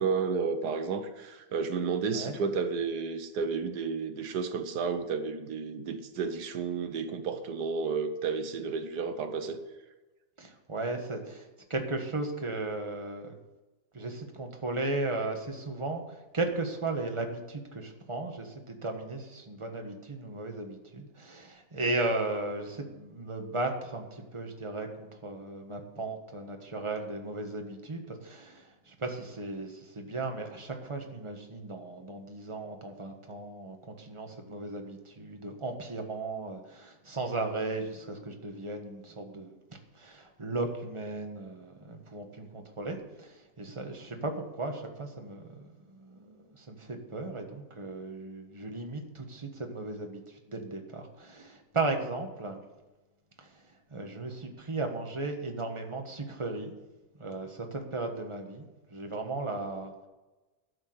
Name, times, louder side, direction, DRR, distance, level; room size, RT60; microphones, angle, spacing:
voice 1, 0.0-9.6, right 5 dB, 85° right, 8 dB, 1.6 m, -32 dB
voice 2, 10.4-13.4 13.9-39.6 39.9-52.6 53.4-53.6 53.9-56.7 57.2-58.7 58.9-60.1, right 2 dB, 20° right, 4 dB, 1.4 m, -36 dB
12.0 x 6.9 x 7.8 m, 1.1 s
omnidirectional pair, 1.7 m